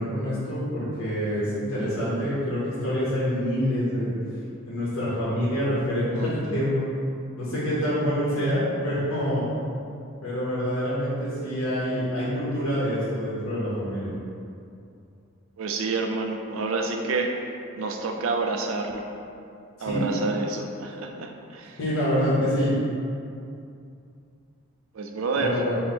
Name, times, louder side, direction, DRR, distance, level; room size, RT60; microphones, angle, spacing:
voice 1, 0.0-4.1 4.6-6.8 7.4-9.4 10.2-14.1 19.8-20.2 21.8-22.7 25.4-25.8, equal, 75° left, -9 dB, 1.0 m, -26 dB
voice 2, 6.1-6.6 15.6-17.4 17.8-19.1 19.8-21.8 24.9-25.6, right 3 dB, 65° right, 3 dB, 0.4 m, -28 dB
4.4 x 2.1 x 4.2 m, 2.5 s
head